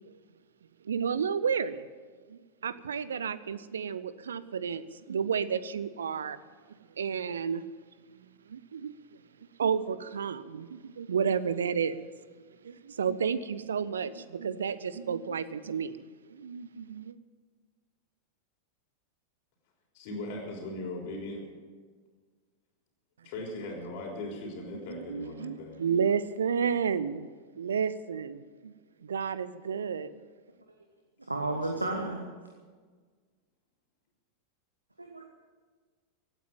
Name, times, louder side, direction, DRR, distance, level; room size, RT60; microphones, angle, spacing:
voice 1, 0.8-1.8 2.3-6.4 7.0-7.6 8.5-9.0 9.6-12.1 12.6-17.1 24.9-27.3 27.5-28.7 29.0-30.2, right 7 dB, 70° right, 16 dB, 0.7 m, -31 dB
voice 2, 19.9-21.5 23.2-25.8 31.4-32.1, left 2 dB, 50° left, 0 dB, 3.6 m, -39 dB
voice 3, 31.3-32.2 35.0-35.2, right 2 dB, 85° right, 3 dB, 1.2 m, -32 dB
16.5 x 9.1 x 9.0 m, 1.5 s
figure-of-eight pair, 90°, 0 cm